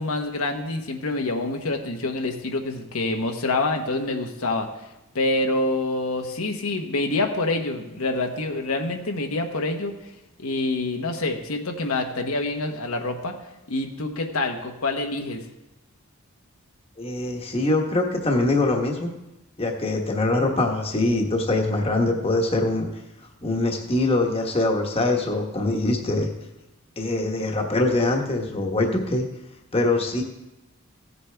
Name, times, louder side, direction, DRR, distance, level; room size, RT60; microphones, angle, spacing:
voice 1, 0.0-4.7 5.1-9.9 10.4-13.4 13.7-15.4, left 2 dB, 80° left, 3 dB, 1.1 m, -26 dB
voice 2, 17.0-19.1 19.6-22.9 23.4-26.3 27.0-29.2 29.7-30.2, left 2 dB, 25° left, 2 dB, 1.1 m, -23 dB
15.5 x 8.2 x 3.4 m, 0.96 s
head